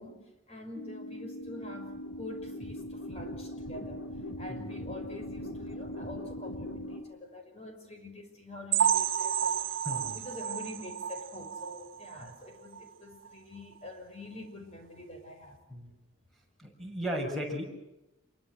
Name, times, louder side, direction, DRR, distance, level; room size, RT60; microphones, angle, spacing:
voice 1, 0.0-4.0 4.4-9.8 10.1-15.6, left 1 dB, 30° left, 4 dB, 6.0 m, -46 dB
sound 1, 0.7-7.0, left 1 dB, 80° left, 4.9 m, -40 dB
sound 2, 8.7-12.3 12.7-12.9 13.3-13.4 13.8-13.9, right 8 dB, 75° right, 1.1 m, -31 dB
voice 2, 9.8-10.2 12.2-12.3 15.7-15.9 16.6-17.6, equal, ahead, 0 dB, 6.7 m, -35 dB
27.5 x 24.0 x 6.3 m, 0.97 s
head